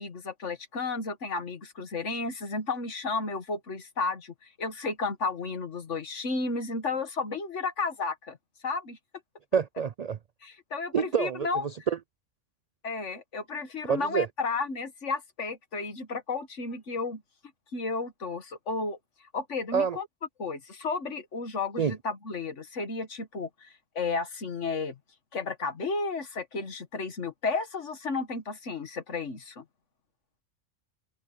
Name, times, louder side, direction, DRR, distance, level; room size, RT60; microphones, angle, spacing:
voice 1, 0.0-8.4 8.6-9.0 10.4-11.6 12.8-17.2 17.7-19.0 19.3-20.1 20.4-25.0 25.3-29.6, left 4 dB, 70° left, 2.0 m, -33 dB
voice 2, 9.5-10.2 10.9-12.0 13.9-14.3 19.7-20.0 21.8-21.9, right 7 dB, 75° right, 0.3 m, -27 dB
omnidirectional pair, 1.3 m